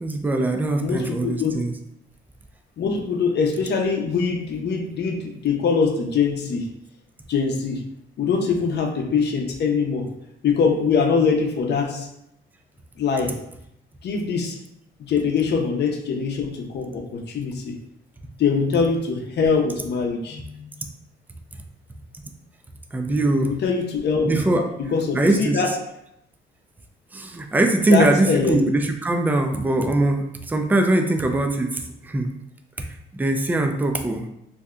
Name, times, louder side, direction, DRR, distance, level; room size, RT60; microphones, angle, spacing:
voice 1, 0.0-1.7 22.9-23.5 24.2-24.6 25.1-25.6 27.1-32.3 32.8-32.9 33.1-34.3, right 2 dB, 10° right, 4 dB, 0.3 m, -21 dB
voice 2, 0.8-1.5 2.8-6.7 7.3-7.8 8.2-10.1 10.4-12.1 13.0-13.3 14.0-14.6 15.1-17.7 18.4-20.7 23.4-25.7 27.9-28.6, left 5 dB, 60° left, 2 dB, 0.6 m, -23 dB
2.7 x 2.1 x 3.6 m, 0.78 s
cardioid pair, 90°, 20 cm